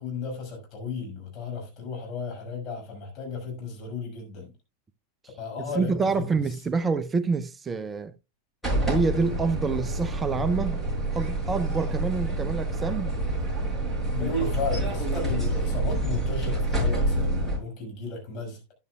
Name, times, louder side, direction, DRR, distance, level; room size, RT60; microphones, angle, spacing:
voice 1, 0.0-4.5 5.4-6.3 14.1-18.7, left 3 dB, 35° left, 5.9 m, -34 dB
voice 2, 5.7-8.1 8.9-10.8 11.1-13.1, right 4 dB, 15° right, 0.6 m, -27 dB
sound 1, 8.6-17.6, right 1 dB, 5° left, 6.7 m, -27 dB
13.5 x 10.5 x 2.3 m
figure-of-eight pair, 90°, 0 cm